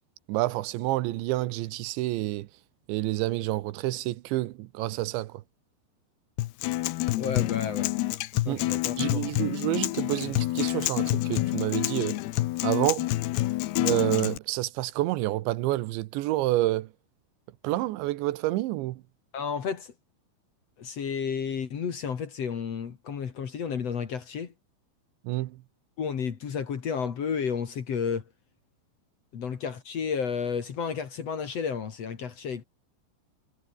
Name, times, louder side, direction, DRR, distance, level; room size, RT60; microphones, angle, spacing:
voice 1, 0.3-2.5 2.9-5.4 8.5-8.7 9.0-12.2 12.6-13.1 13.7-16.9 17.6-19.0 25.2-25.6, right 17 dB, 80° right, 3.2 m, -28 dB
Acoustic guitar, 6.4-14.4, left 17 dB, 75° left, 2.6 m, -28 dB
voice 2, 7.2-7.9 8.4-9.3 19.3-19.9 20.8-24.5 26.0-28.2 29.3-32.6, left 6 dB, 45° left, 2.3 m, -32 dB
omnidirectional pair, 5.4 m